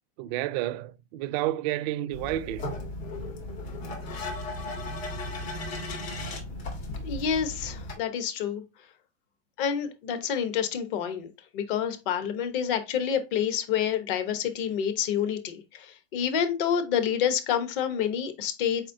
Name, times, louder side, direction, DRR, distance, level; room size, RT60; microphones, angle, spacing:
voice 1, 0.2-2.7 6.8-7.2, right 14 dB, 45° right, 0.4 m, -31 dB
sound 1, 2.1-8.0, left 2 dB, 80° left, 2.3 m, -36 dB
voice 2, 7.0-8.6 9.6-18.9, left 8 dB, 60° left, 1.0 m, -28 dB
4.4 x 4.2 x 2.7 m
supercardioid pair, 130°, 30 cm